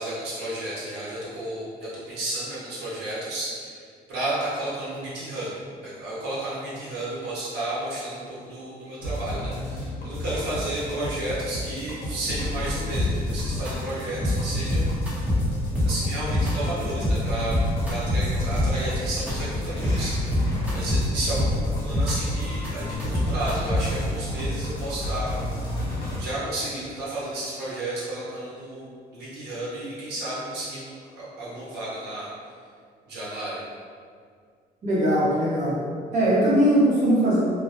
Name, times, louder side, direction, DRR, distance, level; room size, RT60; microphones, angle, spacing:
voice 1, 0.0-5.6 5.8-15.2 15.8-17.6 17.9-25.4 26.2-32.3 33.1-33.6, right 1 dB, 80° right, -8 dB, 0.8 m, -32 dB
sound 1, 9.0-26.2, left 1 dB, 65° left, 0.8 m, -32 dB
sound 2, 12.9-13.3 13.7-13.8 14.0-14.4 14.7-15.4 15.8-16.5 16.8-17.2 17.5-18.9 19.3-19.4 19.6-20.0 20.3-21.0 21.4-22.1 22.4-24.0, left 1 dB, 10° right, 0.7 m, -24 dB
sound 3, 17.1-23.3, left 1 dB, 20° left, 0.9 m, -35 dB
voice 2, 34.8-35.8 36.1-37.4, right 1 dB, 45° right, -7 dB, 0.8 m, -20 dB
2.2 x 2.0 x 2.8 m, 2.1 s
cardioid pair, 110°, 17 cm